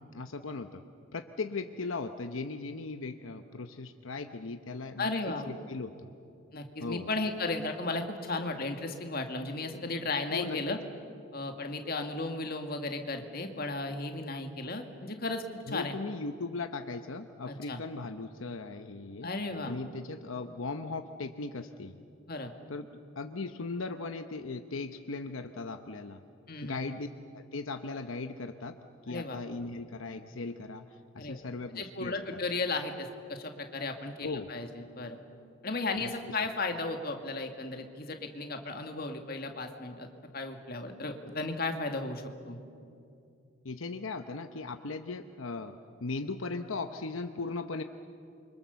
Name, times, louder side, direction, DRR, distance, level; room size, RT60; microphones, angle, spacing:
voice 1, 0.1-0.8 1.1-6.1 6.8-7.1 10.3-10.8 15.7-19.3 19.6-22.0 22.7-22.9 23.1-26.2 26.6-27.1 27.3-28.8 29.0-32.4 34.2-34.5 36.0-36.1 43.6-47.8, left 3 dB, 80° left, 7 dB, 0.9 m, -38 dB
voice 2, 5.0-5.5 6.5-10.8 11.3-15.9 17.5-17.8 19.2-19.8 22.3-22.5 26.5-26.9 29.1-29.4 31.2-31.4 31.8-35.2 35.6-40.1 40.3-42.6, left 3 dB, 45° left, 5 dB, 2.1 m, -35 dB
28.5 x 25.0 x 7.0 m, 2.5 s
head